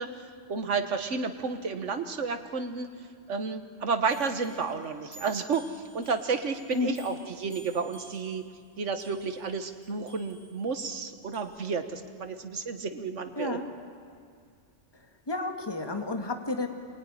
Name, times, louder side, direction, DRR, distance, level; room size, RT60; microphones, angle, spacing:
voice 1, 0.0-2.9 3.3-8.4 8.8-13.6, right 4 dB, 75° right, 7 dB, 1.7 m, -31 dB
sound 1, 4.1-11.4, right 1 dB, 90° left, 5.1 m, -54 dB
voice 2, 13.4-13.7 15.3-16.7, left 3 dB, 20° left, 4 dB, 1.9 m, -31 dB
27.0 x 21.0 x 9.9 m, 2.2 s
omnidirectional pair, 1.3 m